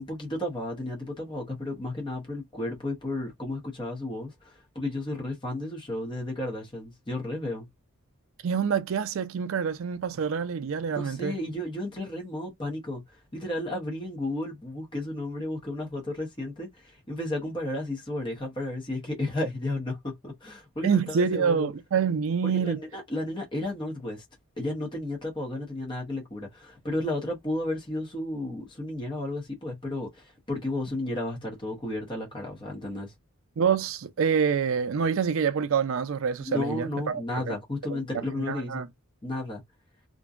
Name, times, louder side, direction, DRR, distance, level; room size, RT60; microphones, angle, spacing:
voice 1, 0.0-7.7 10.9-21.7 22.4-24.2 24.6-33.1 36.4-38.9 39.2-39.6, left 1 dB, 20° left, 0.7 m, -33 dB
voice 2, 8.4-11.3 20.8-22.8 33.6-37.5 37.9-38.0 38.4-38.9, right 6 dB, 65° right, 0.4 m, -26 dB
2.6 x 2.1 x 2.3 m
head